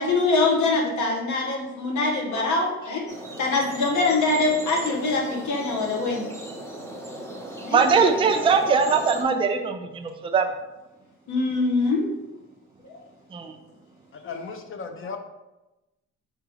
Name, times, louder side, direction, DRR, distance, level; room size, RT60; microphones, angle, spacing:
voice 1, 0.0-3.1 3.4-6.2 7.6-7.8 11.3-12.1 12.8-12.9, left 3 dB, 70° left, 0 dB, 1.1 m, -23 dB
sound 1, 3.1-9.2, right 1 dB, 10° left, 0.8 m, -37 dB
voice 2, 7.7-10.5 13.3-13.5, right 5 dB, 20° right, 5 dB, 0.4 m, -21 dB
voice 3, 14.1-15.2, left 4 dB, 45° left, 6 dB, 0.6 m, -36 dB
4.7 x 3.5 x 3.1 m, 1.0 s
cardioid pair, 90°, 30 cm